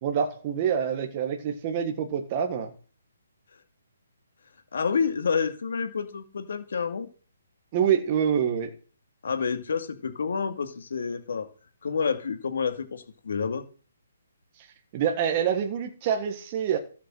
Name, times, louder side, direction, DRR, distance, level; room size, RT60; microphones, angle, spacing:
voice 1, 0.0-2.7 7.7-8.7 14.6-14.7 14.9-16.8, right 8 dB, 20° right, 1.6 m, -26 dB
voice 2, 4.7-7.1 9.2-11.5 11.8-13.6, left 5 dB, 55° left, 2.4 m, -29 dB
16.0 x 8.6 x 7.8 m
hypercardioid pair, 175°, 0 cm